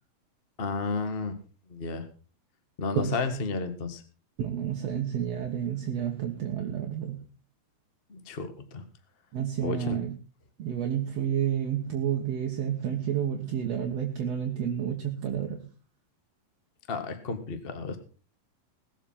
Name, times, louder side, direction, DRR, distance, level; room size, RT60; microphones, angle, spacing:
voice 1, 0.6-1.3 1.7-2.0 2.8-4.0 8.1-8.8 9.6-10.0 16.9-18.0, left 4 dB, 50° left, 8 dB, 0.6 m, -32 dB
voice 2, 4.4-7.3 9.3-10.2 10.6-15.7, right 9 dB, 55° right, 2 dB, 2.0 m, -30 dB
19.5 x 7.8 x 5.7 m, 0.38 s
omnidirectional pair, 4.4 m